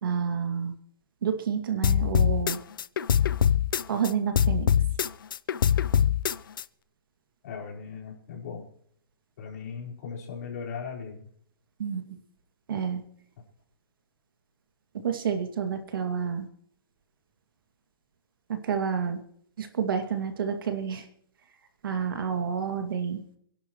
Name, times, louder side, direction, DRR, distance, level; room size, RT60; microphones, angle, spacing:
voice 1, 0.0-0.7 1.2-2.6 3.9-4.7 11.8-12.2 12.7-13.0 15.0-16.5 18.6-19.2 19.6-21.1 21.8-23.2, right 7 dB, 65° right, 6 dB, 2.4 m, -29 dB
sound 1, 1.8-4.1 4.4-6.6, left 9 dB, 65° left, 0.7 m, -23 dB
voice 2, 7.4-8.6 9.4-11.3, left 6 dB, 45° left, -3 dB, 4.8 m, -38 dB
27.5 x 11.5 x 3.1 m, 0.66 s
hypercardioid pair, 170°, 12 cm